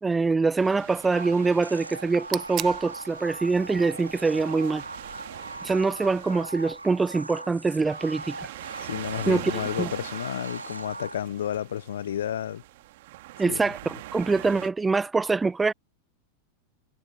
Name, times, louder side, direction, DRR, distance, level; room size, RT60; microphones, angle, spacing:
voice 1, 0.0-4.8 5.6-8.5 9.3-9.9 13.4-15.7, right 4 dB, 10° right, 0.4 m, -24 dB
sound 1, 0.6-14.7, right 18 dB, 50° right, 3.0 m, -43 dB
sound 2, 1.1-11.5, right 2 dB, 85° right, 0.9 m, -40 dB
sound 3, 2.0-7.1, right 14 dB, 35° right, 1.3 m, -43 dB
voice 2, 8.8-12.6 13.5-13.6, left 10 dB, 60° left, 1.2 m, -31 dB
figure-of-eight pair, 90°, 0 cm